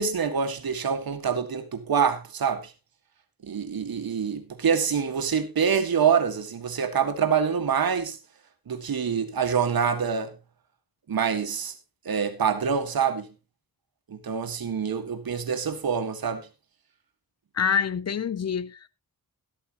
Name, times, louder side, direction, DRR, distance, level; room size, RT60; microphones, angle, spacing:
voice 1, 0.0-2.7 3.4-8.2 8.7-10.3 11.1-11.7 12.1-13.3 14.1-16.5, right 7 dB, 75° right, 1.9 m, -26 dB
voice 2, 17.5-18.9, left 7 dB, 45° left, 0.6 m, -26 dB
13.0 x 12.5 x 3.0 m
wide cardioid pair, 145°, 36 cm